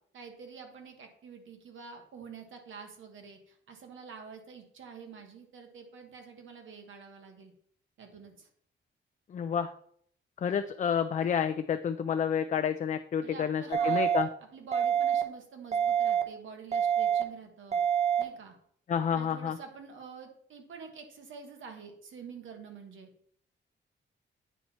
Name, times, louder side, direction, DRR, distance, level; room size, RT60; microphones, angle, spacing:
voice 1, 0.1-7.5 8.0-8.5 13.2-14.1 14.5-17.8 18.2-18.5 19.1-23.1, right 5 dB, 85° right, 4 dB, 1.4 m, -47 dB
voice 2, 9.3-9.7 10.4-14.3 18.9-19.6, left 8 dB, 40° left, 9 dB, 0.4 m, -29 dB
sound 1, 13.7-14.2 14.7-15.2 15.7-16.2 16.7-17.2 17.7-18.2, right 9 dB, 35° right, 0.8 m, -26 dB
9.1 x 4.3 x 4.2 m, 0.65 s
wide cardioid pair, 130°, 20 cm